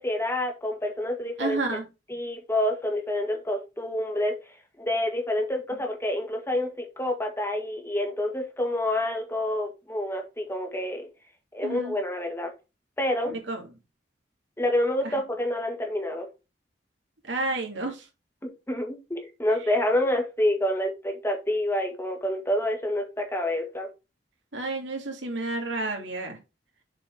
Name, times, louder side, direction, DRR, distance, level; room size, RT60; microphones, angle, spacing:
voice 1, 0.0-1.6 2.1-4.3 4.8-11.1 11.5-12.5 13.0-13.3 14.6-16.3 18.4-23.9, left 1 dB, 15° left, 1.7 m, -28 dB
voice 2, 1.4-1.8 11.6-12.0 13.3-13.6 15.0-15.2 17.2-18.1 24.5-26.4, right 2 dB, 80° right, 2.7 m, -31 dB
7.4 x 4.5 x 4.8 m
head